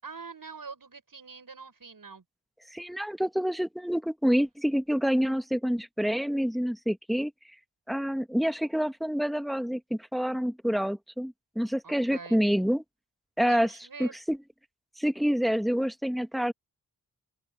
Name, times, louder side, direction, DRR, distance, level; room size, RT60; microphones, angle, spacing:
voice 1, 0.0-2.2 11.8-12.4 13.4-14.2, right 5 dB, 60° right, 6.5 m, -44 dB
voice 2, 2.7-7.3 7.9-12.8 13.4-13.7 14.0-14.4 15.0-16.5, equal, ahead, 1.6 m, -27 dB
open air
wide cardioid pair, 75°, 38 cm